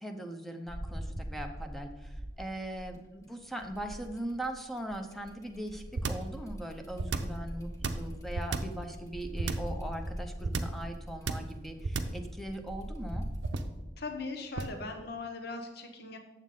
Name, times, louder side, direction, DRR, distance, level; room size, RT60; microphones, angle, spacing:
voice 1, 0.0-3.0 3.3-13.3, right 1 dB, ahead, 4 dB, 0.7 m, -40 dB
sound 1, 0.7-3.1 3.6-13.5, equal, 20° left, 1.5 m, -42 dB
sound 2, 5.9-6.3 7.0-7.4 7.8-8.8 9.4-9.8 10.4-10.8 11.3-11.6 11.8-12.2 13.4-13.8 14.6-14.8, right 3 dB, 75° right, 0.6 m, -32 dB
voice 2, 14.0-16.2, left 3 dB, 60° left, 5 dB, 1.0 m, -39 dB
9.0 x 7.3 x 3.8 m, 1.1 s
head